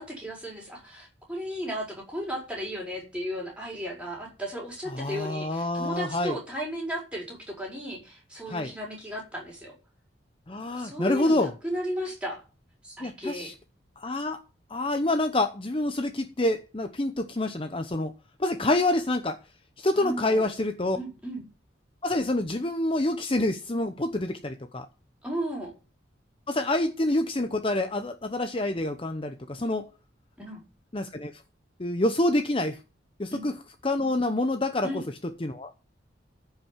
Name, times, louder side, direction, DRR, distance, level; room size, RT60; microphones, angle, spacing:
voice 1, 0.0-9.7 10.8-12.4 12.8-13.5 19.9-20.5 20.9-21.4 25.2-25.7 30.4-30.6 33.3-33.5 34.8-35.1, equal, 5° right, 4.6 m, -35 dB
voice 2, 4.9-6.4 8.5-8.7 10.5-11.5 13.0-13.5 14.0-14.4 14.7-18.1 18.4-19.4 19.8-21.0 22.0-24.9 26.5-29.9 30.9-31.3 31.8-32.8 33.2-33.5 33.8-35.0 35.4-35.7, left 1 dB, 30° left, 0.8 m, -27 dB
15.0 x 5.6 x 7.2 m
head